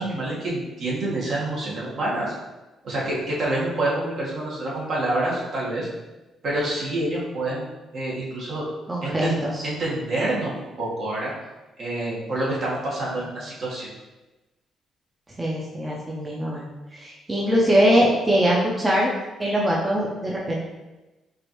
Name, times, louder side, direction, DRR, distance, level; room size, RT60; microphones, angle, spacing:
voice 1, 0.0-2.3 2.8-5.9 6.4-7.6 7.9-8.6 9.0-10.5 10.8-11.3 11.8-13.9, right 1 dB, 60° right, -6 dB, 1.4 m, -27 dB
voice 2, 8.9-9.7 15.4-16.6 16.9-19.1 19.4-20.6, equal, 20° right, -4 dB, 0.6 m, -22 dB
4.8 x 2.6 x 3.0 m, 1.1 s
cardioid pair, 90°, 0 cm